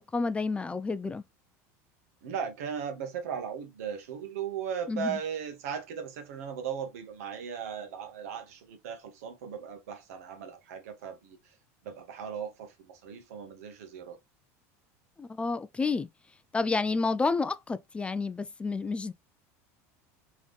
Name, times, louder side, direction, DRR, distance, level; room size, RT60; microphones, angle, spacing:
voice 1, 0.1-1.2 4.9-5.2 15.2-16.1 16.5-19.1, left 4 dB, 15° left, 0.3 m, -30 dB
voice 2, 2.2-11.6 11.8-14.2, right 7 dB, 85° right, 1.6 m, -37 dB
3.8 x 3.7 x 3.3 m
supercardioid pair, 120°, 8 cm